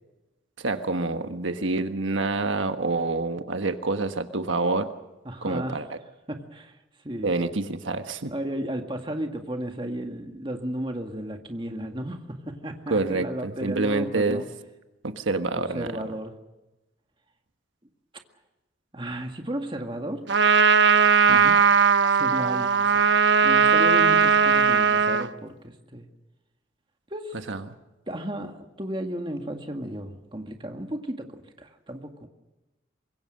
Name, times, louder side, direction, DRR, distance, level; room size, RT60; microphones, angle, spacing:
voice 1, 0.6-4.9 5.4-6.0 7.2-8.3 12.9-14.4 15.0-15.9 21.3-21.5 27.5-27.6, right 3 dB, 80° right, 7 dB, 1.4 m, -27 dB
voice 2, 5.3-5.8 6.3-6.7 7.0-7.3 8.3-14.5 15.5-16.3 18.9-20.2 22.1-23.1 23.4-26.1 27.1-27.4 28.1-32.3, right 1 dB, 25° right, 4 dB, 1.9 m, -34 dB
Trumpet, 20.3-25.3, right 6 dB, 65° right, 1.0 m, -19 dB
25.0 x 22.0 x 6.5 m, 1.0 s
head